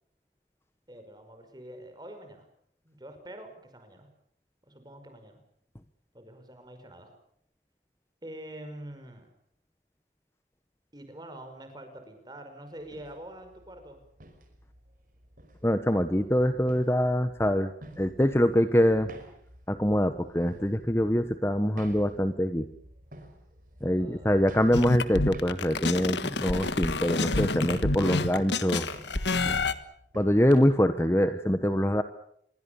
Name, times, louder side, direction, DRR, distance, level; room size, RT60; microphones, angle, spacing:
voice 1, 0.9-2.5 2.8-4.1 4.6-5.4 6.1-7.1 8.2-9.3 10.9-14.0 23.8-24.5, right 1 dB, 25° right, 6 dB, 5.5 m, -45 dB
sound 1, 12.8-30.5, right 1 dB, 50° right, 5.2 m, -50 dB
voice 2, 15.6-17.7 18.0-19.1 19.7-22.7 23.8-28.9 29.4-29.6 30.1-32.0, equal, 15° left, 10 dB, 1.1 m, -24 dB
sound 2, 24.7-29.7, left 3 dB, 85° left, 1.6 m, -28 dB
27.0 x 22.5 x 7.0 m, 0.69 s
head